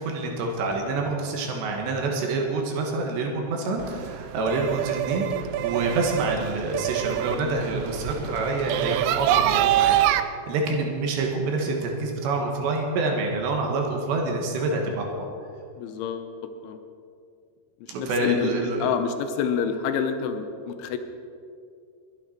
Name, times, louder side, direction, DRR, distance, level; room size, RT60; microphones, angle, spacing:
voice 1, 0.0-10.0 10.2-15.3 17.9-18.9, right 3 dB, 70° right, 1 dB, 3.5 m, -27 dB
sound 1, 3.8-10.2, right 12 dB, 85° right, 2.5 m, -25 dB
voice 2, 15.8-16.3 16.6-16.8 17.8-21.0, left 7 dB, 85° left, 7 dB, 3.2 m, -28 dB
22.0 x 9.0 x 4.5 m, 2.4 s
omnidirectional pair, 5.5 m